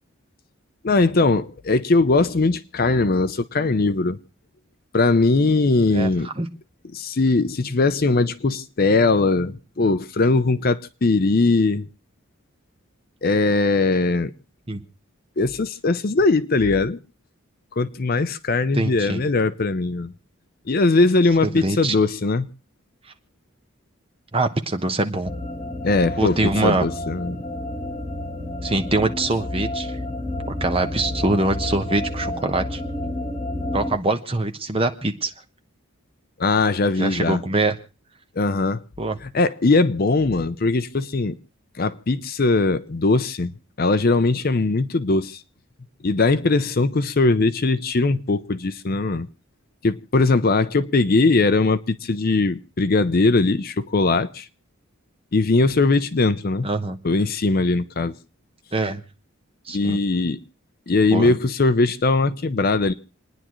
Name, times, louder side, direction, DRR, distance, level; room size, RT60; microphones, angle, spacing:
voice 1, 0.8-4.2 4.9-6.3 6.9-11.9 13.2-14.3 15.4-17.0 17.8-20.1 20.7-22.5 25.8-27.4 36.4-37.4 38.4-38.8 39.2-41.4 41.8-43.5 43.8-45.4 46.0-49.3 49.8-54.5 55.3-56.7 57.0-58.2 59.7-60.4 60.9-62.9, left 3 dB, 45° left, 0.6 m, -20 dB
voice 2, 18.7-19.2 21.6-21.9 24.3-25.3 26.2-26.9 28.6-30.0 30.5-32.8 33.7-35.3 37.0-37.7 39.0-39.2 56.6-57.0 58.7-59.0 59.7-60.0 61.1-61.3, right 2 dB, 25° right, 1.0 m, -23 dB
sound 1, 25.2-34.0, left 1 dB, 15° left, 1.5 m, -30 dB
29.0 x 10.0 x 3.1 m
head